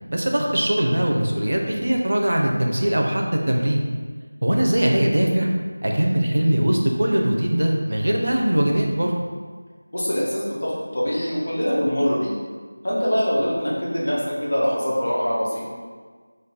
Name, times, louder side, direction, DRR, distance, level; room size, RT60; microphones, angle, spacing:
voice 1, 0.1-3.8 4.4-5.5 5.8-9.1, right 1 dB, 55° right, 0 dB, 0.5 m, -21 dB
voice 2, 9.9-12.3 12.8-15.6, equal, 65° left, -6 dB, 1.0 m, -23 dB
3.1 x 2.1 x 3.9 m, 1.5 s
figure-of-eight pair, 175°, 0 cm